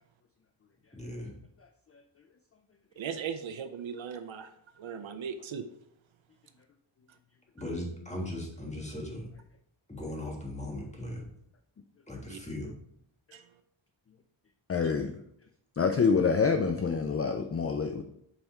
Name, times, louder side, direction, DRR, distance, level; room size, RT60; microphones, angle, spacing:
voice 1, 1.0-1.3 7.5-9.3 9.9-11.2 12.1-12.7, left 1 dB, 15° left, -1 dB, 1.6 m, -38 dB
voice 2, 3.0-5.7 12.3-12.4 13.3-13.5 14.8-14.9, right 7 dB, 70° right, 10 dB, 0.6 m, -38 dB
voice 3, 14.7-15.2 15.8-18.0, left 5 dB, 30° left, 6 dB, 0.4 m, -26 dB
5.6 x 4.2 x 4.4 m, 0.73 s
wide cardioid pair, 125°, 49 cm